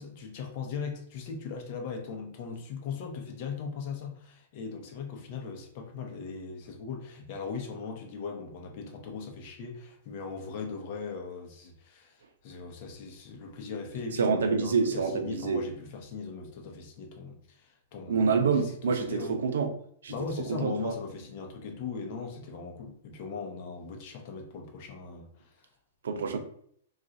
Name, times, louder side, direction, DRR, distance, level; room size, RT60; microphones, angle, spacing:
voice 1, 0.0-19.4 20.1-25.5, left 5 dB, 40° left, 0.7 m, -39 dB
voice 2, 14.2-15.6 18.1-19.7 20.0-20.1 20.5-20.9 26.0-26.4, right 5 dB, 90° right, 0.5 m, -27 dB
2.4 x 2.3 x 4.0 m
hypercardioid pair, 155°, 0 cm